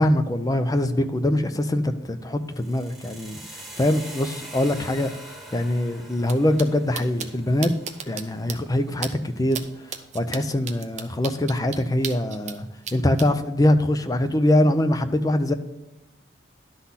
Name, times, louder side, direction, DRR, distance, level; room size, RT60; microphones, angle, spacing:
voice 1, 0.0-3.4 3.8-5.1 5.5-7.7 8.1-9.6 10.1-15.5, left 1 dB, 20° left, 9 dB, 0.5 m, -23 dB
sound 1, 2.5-10.5, right 1 dB, ahead, 1.1 m, -44 dB
sound 2, 6.2-6.3 6.6-6.7 6.9-7.3 7.6-8.2 8.5-8.6 9.0-9.1 9.5-9.6 9.9-12.6 12.8-13.3, right 7 dB, 40° right, 0.7 m, -33 dB
11.5 x 4.0 x 5.7 m, 0.97 s
head